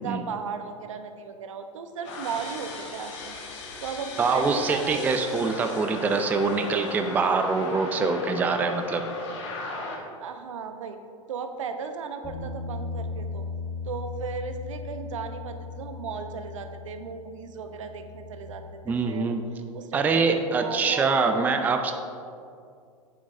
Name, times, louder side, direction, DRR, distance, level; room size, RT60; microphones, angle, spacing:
voice 1, 0.0-3.4 3.8-5.5 7.9-8.2 10.2-11.0 11.3-13.5 13.8-19.4 19.7-21.3, right 6 dB, 65° right, 8 dB, 0.6 m, -36 dB
sound 1, 2.0-10.0, left 3 dB, 55° left, 1.3 m, -37 dB
voice 2, 4.2-9.0 18.9-19.4 19.9-21.9, right 4 dB, 10° right, 6 dB, 0.3 m, -24 dB
Bass guitar, 12.2-18.5, left 4 dB, 20° left, 1.3 m, -37 dB
8.5 x 7.7 x 2.5 m, 2.4 s
figure-of-eight pair, 95°, 18 cm